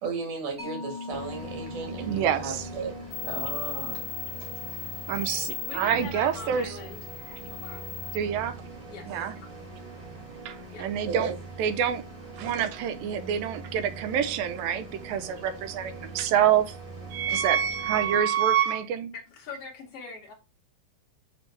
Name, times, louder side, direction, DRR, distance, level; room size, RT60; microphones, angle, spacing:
voice 1, 0.0-3.0 3.2-4.0 11.1-11.3 12.3-12.7 17.3-17.4, right 5 dB, 60° right, 3.0 m, -35 dB
Mallet percussion, 0.6-7.6, left 4 dB, 20° right, 1.4 m, -43 dB
sound 1, 1.1-18.2, right 3 dB, 35° right, 2.3 m, -43 dB
voice 2, 2.1-2.6 5.1-6.8 7.3-7.4 8.1-8.6 9.1-9.4 10.5-11.3 11.6-12.0 12.4-16.8 17.1-19.1, right 9 dB, 80° right, 2.3 m, -27 dB
sound 2, 3.1-8.2, left 8 dB, 70° left, 1.5 m, -37 dB
voice 3, 5.6-7.0 7.5-7.8 8.9-9.2 10.7-10.9 19.1-20.3, left 4 dB, 85° left, 1.3 m, -42 dB
6.1 x 5.6 x 3.2 m
omnidirectional pair, 4.3 m